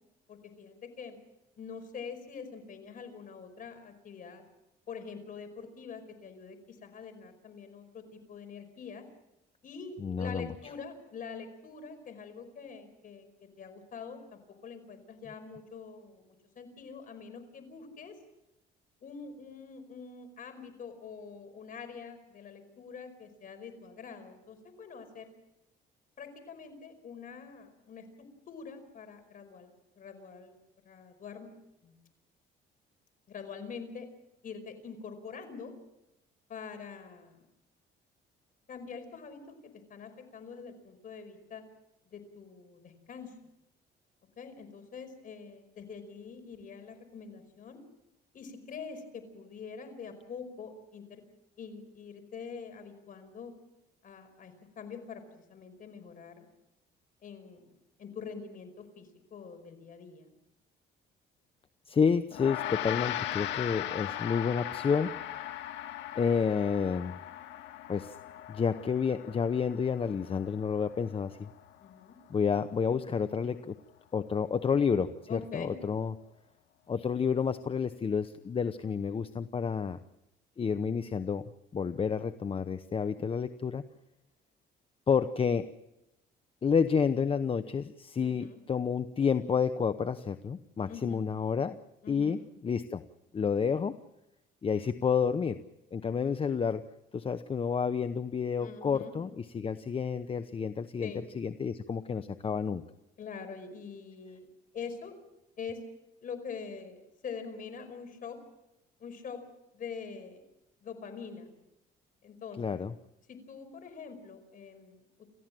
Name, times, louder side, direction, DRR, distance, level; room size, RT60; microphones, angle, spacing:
voice 1, 0.3-1.2 1.6-4.4 4.9-9.1 9.6-18.2 19.0-25.3 26.2-29.7 29.9-30.5 30.8-31.5 31.8-31.9 33.3-34.1 34.4-35.7 36.5-37.5 38.7-41.6 42.1-43.4 44.4-47.8 48.3-51.2 51.6-53.5 54.0-56.5 57.2-57.7 58.0-60.3 71.8-72.2 75.3-75.8 88.2-88.6 90.9-91.2 92.0-92.3 98.6-99.1 101.0-101.2 103.2-104.5 104.7-105.1 105.6-105.8 106.2-108.4 109.0-109.4 109.7-110.4 110.8-111.5 112.2-112.8 113.3-115.3, left 5 dB, 50° left, 8 dB, 5.1 m, -45 dB
voice 2, 10.0-10.5 61.9-65.1 66.1-67.2 67.9-68.1 68.5-71.5 72.3-73.8 74.1-76.1 76.9-80.0 80.6-83.8 85.1-85.7 86.6-91.8 92.1-93.0 93.3-93.9 94.6-95.6 95.9-96.9 97.1-101.1 101.4-102.8 112.6-112.9, left 6 dB, 30° left, 11 dB, 0.8 m, -30 dB
Gong, 62.3-71.9, left 12 dB, 80° left, 2.0 m, -39 dB
29.0 x 15.0 x 7.6 m, 0.91 s
cardioid pair, 110°, 18 cm